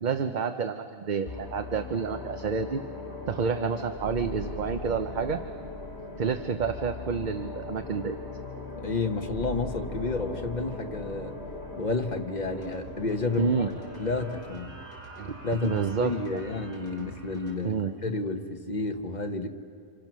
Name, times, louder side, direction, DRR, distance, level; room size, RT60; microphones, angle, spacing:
voice 1, 0.0-2.8 3.3-5.4 6.2-8.2 13.4-13.7 15.2-16.4 17.6-17.9, right 6 dB, 50° right, 8 dB, 0.8 m, -29 dB
sound 1, 1.3-14.6, left 2 dB, 80° left, 2.3 m, -39 dB
voice 2, 8.8-11.4 11.8-13.7 14.0-14.8 15.4-17.7 18.0-19.5, left 3 dB, 45° left, 5 dB, 1.4 m, -31 dB
sound 2, 12.4-17.5, right 2 dB, 65° right, 5.8 m, -46 dB
29.5 x 27.0 x 6.2 m, 2.4 s
omnidirectional pair, 1.1 m